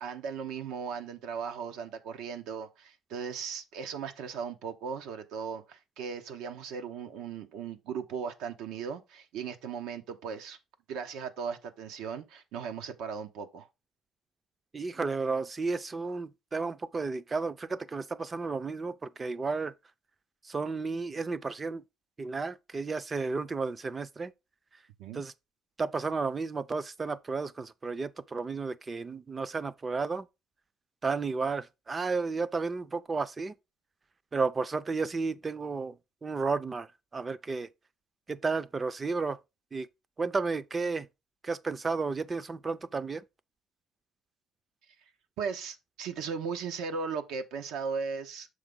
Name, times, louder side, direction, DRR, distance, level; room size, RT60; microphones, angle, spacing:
voice 1, 0.0-10.6 10.9-13.7 25.0-25.2 45.4-48.5, right 6 dB, 85° right, 0.8 m, -37 dB
voice 2, 14.7-19.7 20.4-21.8 22.2-24.3 25.1-25.3 25.8-30.3 31.0-33.5 34.3-36.0 36.2-36.9 37.1-37.7 38.3-39.4 39.7-39.9 40.2-41.1 41.4-43.2, right 4 dB, 25° right, 0.4 m, -32 dB
6.9 x 4.8 x 3.8 m
cardioid pair, 125°, 0 cm